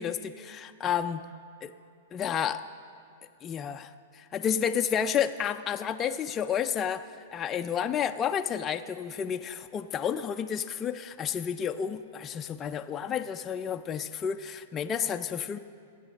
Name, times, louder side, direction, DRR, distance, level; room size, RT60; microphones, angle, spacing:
voice 1, 0.0-1.2 1.6-1.7 2.1-2.7 3.4-15.6, left 8 dB, 20° left, 6 dB, 0.4 m, -31 dB
16.5 x 8.3 x 6.4 m, 2.3 s
hypercardioid pair, 140°, 0 cm